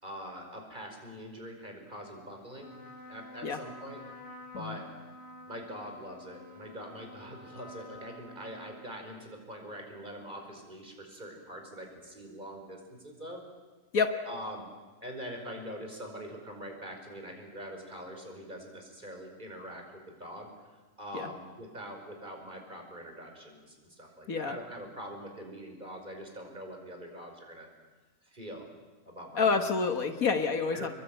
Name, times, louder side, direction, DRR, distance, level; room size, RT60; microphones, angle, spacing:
voice 1, 0.0-2.7 3.1-4.0 4.5-4.9 5.5-13.4 14.3-14.7 15.0-20.5 21.0-27.7 28.2-28.7 29.1-29.5 30.0-30.1 30.7-30.9, equal, 30° right, 3 dB, 5.3 m, -43 dB
Trumpet, 2.5-9.4, left 1 dB, 40° left, 4.7 m, -50 dB
voice 2, 29.4-30.9, left 5 dB, 65° left, 7 dB, 1.9 m, -28 dB
27.5 x 22.5 x 9.1 m, 1.3 s
omnidirectional pair, 1.6 m